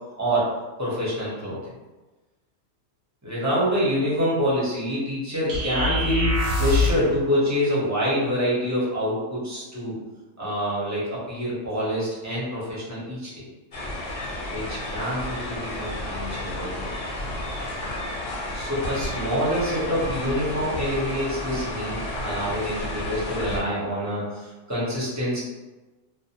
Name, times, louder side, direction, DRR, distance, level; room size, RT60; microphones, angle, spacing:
voice 1, 0.2-0.5 0.8-1.6 3.2-10.0 10.4-13.4 14.4-16.9 18.5-25.4, equal, 20° right, -8 dB, 0.6 m, -26 dB
sound 1, 5.5-7.1, left 2 dB, 80° right, 1.0 m, -23 dB
sound 2, 13.7-23.6, left 1 dB, 55° left, 0.7 m, -32 dB
2.5 x 2.0 x 2.8 m, 1.2 s
omnidirectional pair, 1.4 m